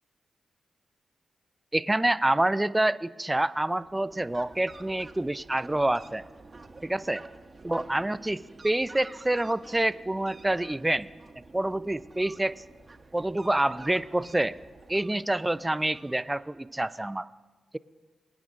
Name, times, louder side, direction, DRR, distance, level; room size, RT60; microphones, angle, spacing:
voice 1, 1.7-6.2 6.8-7.2 7.6-11.1 11.5-12.6 13.1-14.6 14.9-17.3, right 1 dB, 15° right, 15 dB, 0.3 m, -27 dB
Fowl, 3.7-16.6, right 3 dB, 40° right, 0.9 m, -50 dB
23.5 x 9.1 x 2.5 m, 1.3 s
cardioid pair, 55°, 0 cm